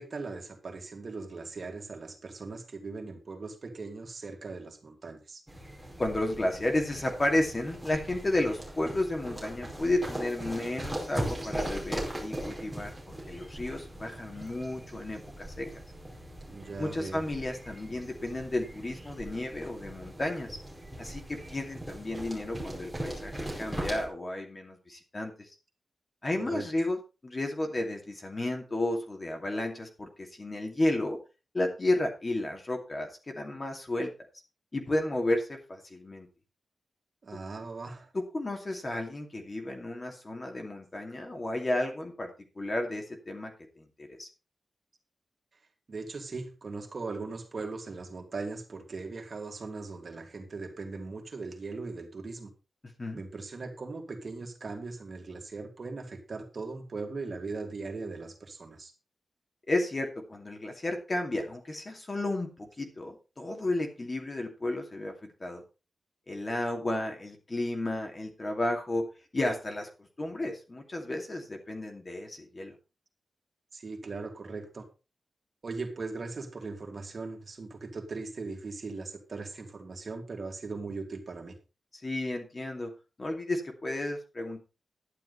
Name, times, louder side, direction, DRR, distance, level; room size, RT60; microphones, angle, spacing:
voice 1, 0.0-5.4 16.5-17.2 26.4-26.6 37.2-38.1 45.9-52.5 53.1-58.9 73.7-74.8 75.6-81.6, right 3 dB, 45° right, 2 dB, 2.8 m, -39 dB
sound 1, 5.5-24.1, right 1 dB, ahead, 4.7 m, -40 dB
voice 2, 6.0-12.9 13.3-15.7 16.8-20.6 21.0-23.3 23.6-25.5 26.2-31.2 31.5-34.1 34.7-36.3 38.1-42.3 42.6-44.3 53.0-53.2 59.7-65.6 66.3-69.1 69.3-72.7 82.0-82.9 83.2-84.6, left 1 dB, 25° left, 3 dB, 2.5 m, -32 dB
12.0 x 10.5 x 4.2 m, 0.30 s
wide cardioid pair, 175°, 0 cm